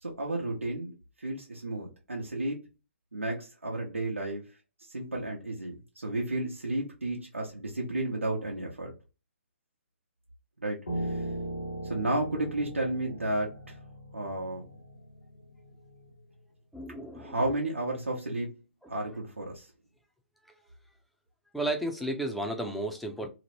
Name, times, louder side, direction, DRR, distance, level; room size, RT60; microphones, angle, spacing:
voice 1, 0.0-2.6 3.1-4.4 4.9-8.9 10.6-11.1 11.9-13.8 14.1-14.7 17.1-18.5 18.9-19.7, right 1 dB, 85° right, 0.9 m, -32 dB
Piano, 10.9-16.1, right 1 dB, 85° left, 1.0 m, -39 dB
voice 2, 16.7-17.4 21.5-23.3, right 1 dB, ahead, 0.4 m, -33 dB
3.0 x 2.0 x 2.9 m
figure-of-eight pair, 130°, 7 cm